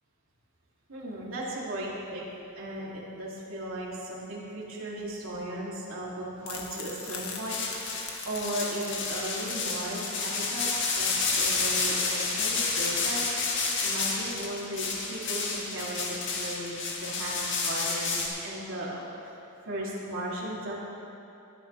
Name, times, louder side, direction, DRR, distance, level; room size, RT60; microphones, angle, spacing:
voice 1, 0.9-2.2 2.5-7.6 8.0-13.2 13.5-19.4 19.6-20.8, right 1 dB, 70° right, -6 dB, 3.2 m, -36 dB
sound 1, 6.4-12.7, left 5 dB, 90° left, 1.5 m, -42 dB
sound 2, 7.5-18.3, left 4 dB, 60° left, 1.9 m, -30 dB
22.5 x 9.6 x 3.5 m, 2.9 s
head